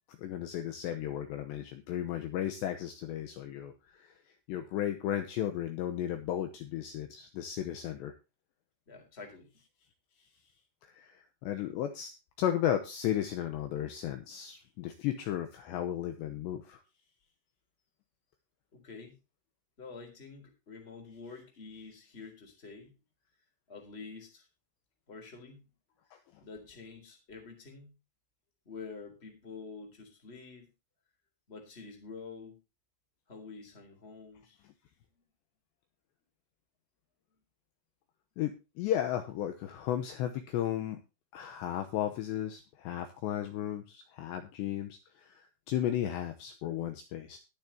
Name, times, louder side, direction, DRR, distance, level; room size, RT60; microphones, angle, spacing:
voice 1, 0.1-4.2 4.5-8.1 10.8-12.1 12.4-16.8 26.1-26.2 38.4-41.0 41.3-47.4, left 11 dB, 75° left, 7 dB, 2.9 m, -34 dB
voice 2, 8.9-9.5 18.7-19.2 19.8-22.9 23.7-24.5 25.1-25.7 26.4-28.0 28.6-30.7 31.5-32.6 33.3-34.6, left 4 dB, 15° left, 4 dB, 3.2 m, -47 dB
21.0 x 7.2 x 2.9 m, 0.28 s
omnidirectional pair, 5.7 m